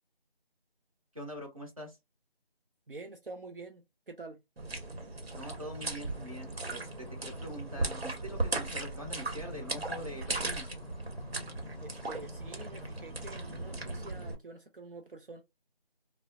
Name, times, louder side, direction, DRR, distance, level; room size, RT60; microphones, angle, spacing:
voice 1, 1.1-2.0 5.4-10.7, equal, 35° right, 0.8 m, -44 dB
voice 2, 2.9-4.4 11.8-15.4, right 3 dB, 65° right, 0.5 m, -47 dB
sound 1, 4.6-14.3, right 2 dB, 85° right, 1.0 m, -37 dB
sound 2, 6.1-14.0, left 2 dB, 50° left, 0.4 m, -52 dB
2.3 x 2.0 x 2.7 m
figure-of-eight pair, 175°, 30 cm